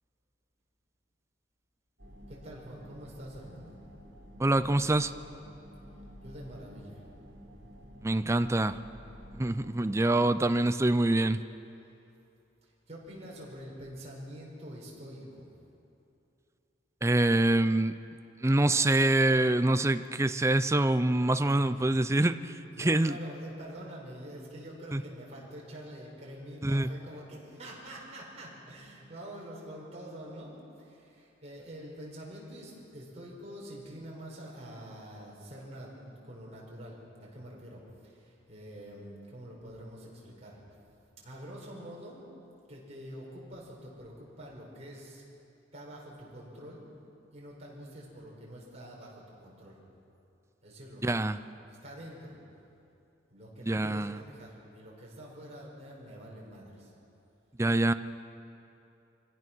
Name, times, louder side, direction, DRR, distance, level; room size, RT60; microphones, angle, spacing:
sound 1, 2.0-9.7, equal, 70° right, 3.8 m, -51 dB
voice 1, 2.3-3.8 6.2-7.0 8.2-8.6 10.2-10.5 12.6-15.5 21.5-21.8 22.7-40.6 41.2-42.2 42.7-45.2 45.7-46.9 47.3-49.8 50.6-51.2 51.7-52.4 53.3-56.9, equal, 35° right, -4 dB, 5.3 m, -46 dB
voice 2, 4.4-5.1 8.0-8.8 9.3-11.4 17.0-18.0 18.4-23.2 24.9-25.0 26.6-26.9 51.0-51.4 53.7-54.2 57.6-57.9, right 2 dB, 15° right, 11 dB, 0.5 m, -25 dB
25.0 x 17.0 x 6.2 m, 2.7 s
head